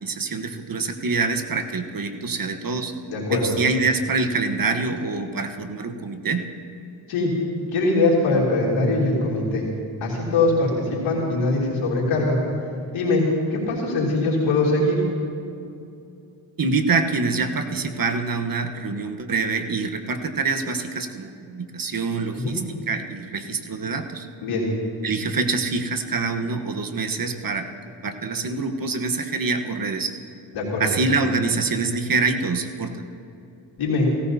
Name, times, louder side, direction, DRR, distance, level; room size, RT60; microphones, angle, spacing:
voice 1, 0.0-2.9 3.3-6.5 16.6-22.6 22.9-24.3 25.0-27.7 28.0-30.1 30.8-33.1, right 4 dB, 45° right, 7 dB, 1.2 m, -25 dB
voice 2, 3.1-3.5 7.1-7.3 7.7-9.6 10.0-12.4 12.9-13.2 13.5-15.0 22.3-22.5 24.4-24.7 30.5-30.9 33.8-34.1, left 2 dB, 90° left, -5 dB, 3.2 m, -22 dB
16.5 x 14.5 x 2.8 m, 2.7 s
supercardioid pair, 50°, 48 cm